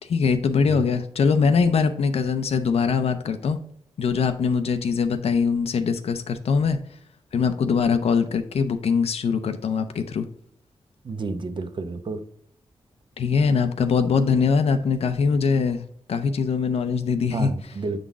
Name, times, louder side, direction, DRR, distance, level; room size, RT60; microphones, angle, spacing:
voice 1, 0.0-3.6 4.0-6.8 7.3-10.3 13.2-17.5, left 5 dB, 70° left, 8 dB, 0.5 m, -22 dB
voice 2, 11.0-12.2 17.3-18.0, right 3 dB, 45° right, 8 dB, 0.7 m, -30 dB
7.1 x 3.9 x 3.6 m, 0.65 s
wide cardioid pair, 100°, 11 cm